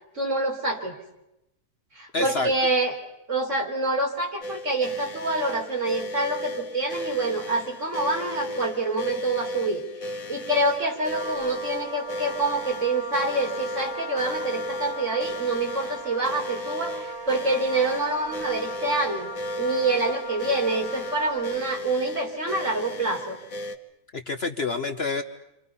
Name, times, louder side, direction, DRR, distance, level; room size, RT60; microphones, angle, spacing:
voice 1, 0.1-1.0 1.9-2.9 3.3-19.3 19.6-23.4, right 2 dB, 50° right, 0 dB, 4.5 m, -26 dB
voice 2, 2.1-2.5 24.1-25.2, left 3 dB, 45° left, 7 dB, 1.2 m, -27 dB
sound 1, 4.4-23.8, left 1 dB, 60° left, 2.0 m, -35 dB
Wind instrument woodwind instrument, 11.1-21.7, right 1 dB, 15° right, 2.3 m, -38 dB
29.5 x 26.0 x 5.6 m, 0.87 s
omnidirectional pair, 1.7 m